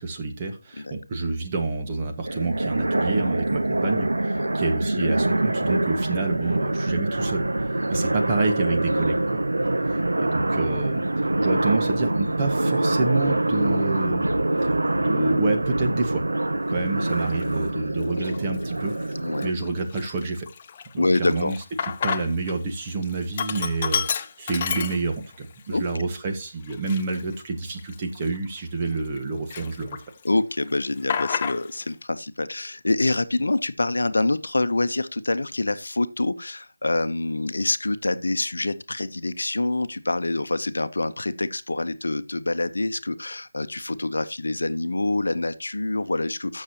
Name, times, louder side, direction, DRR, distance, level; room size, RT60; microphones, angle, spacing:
voice 1, 0.0-9.4 10.2-11.0 11.4-14.3 15.0-16.2 16.7-18.9 19.4-20.5 20.9-21.5 22.0-30.0, right 3 dB, 25° right, 1.5 m, -28 dB
sound 1, 2.2-19.5, right 2 dB, 80° right, 1.2 m, -25 dB
Sink (filling or washing), 17.3-17.4 18.1-18.6 19.0-19.1 19.4-22.5 22.8-25.4 25.8-25.9 26.6-29.2 29.5-30.3 30.5-31.9, left 7 dB, 30° left, 0.5 m, -31 dB
voice 2, 21.0-21.5 25.7-25.8 30.2-46.6, left 2 dB, 75° left, 0.8 m, -26 dB
14.5 x 6.5 x 2.9 m
figure-of-eight pair, 165°, 0 cm